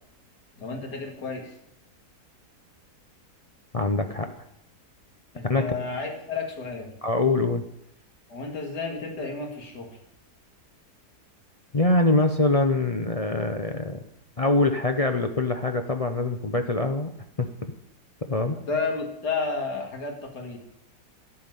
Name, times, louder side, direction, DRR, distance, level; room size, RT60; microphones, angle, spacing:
voice 1, 0.6-1.5 5.3-6.9 8.3-9.9 18.7-20.6, left 4 dB, 85° left, 2 dB, 2.7 m, -31 dB
voice 2, 3.7-4.3 5.4-5.6 7.0-7.6 11.7-14.0 14.4-17.1 17.4-17.7 18.3-18.6, left 2 dB, 40° left, 5 dB, 0.5 m, -24 dB
12.5 x 5.8 x 9.3 m, 0.79 s
omnidirectional pair, 1.7 m